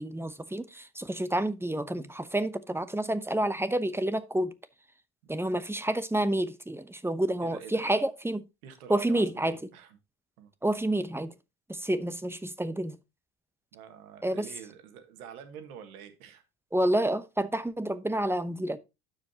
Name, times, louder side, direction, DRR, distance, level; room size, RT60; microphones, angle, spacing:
voice 1, 0.0-4.5 5.3-8.4 8.9-9.6 10.6-11.3 11.7-13.0 14.2-14.5 16.7-18.8, right 1 dB, 5° right, 0.8 m, -29 dB
voice 2, 7.4-8.0 8.6-10.0 10.4-10.5 13.7-16.4, right 8 dB, 90° right, 1.6 m, -47 dB
12.5 x 5.0 x 2.8 m
hypercardioid pair, 70°, 42 cm